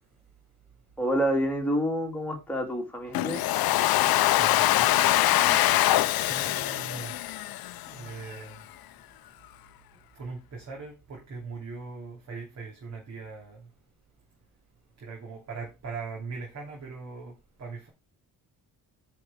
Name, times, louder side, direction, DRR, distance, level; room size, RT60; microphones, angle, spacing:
voice 1, 1.0-3.4, equal, 5° left, 2.3 m, -28 dB
Domestic sounds home sounds, 3.1-8.1, left 15 dB, 75° left, 0.6 m, -23 dB
voice 2, 4.4-5.6 6.3-7.1 7.9-8.6 10.1-13.6 15.0-17.9, right 4 dB, 50° right, 2.8 m, -40 dB
9.8 x 4.8 x 4.9 m
cardioid pair, 180°, 37 cm